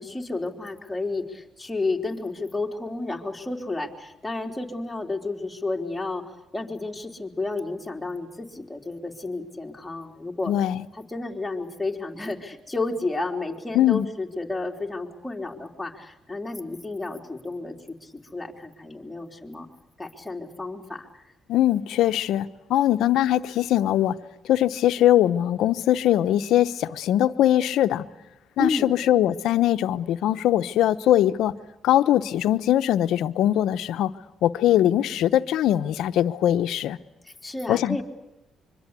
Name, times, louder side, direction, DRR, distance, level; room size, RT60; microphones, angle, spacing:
voice 1, 0.0-6.2 6.5-10.5 11.1-17.8 18.0-19.7 20.0-21.2 28.6-28.9 37.2-38.0, left 2 dB, 10° left, 3.7 m, -31 dB
voice 2, 10.5-10.8 13.7-14.1 21.5-24.2 24.4-28.1 28.6-31.6 31.8-34.1 34.4-37.0 37.7-38.0, left 12 dB, 85° left, 0.9 m, -21 dB
25.0 x 24.0 x 8.3 m
cardioid pair, 90°, 0 cm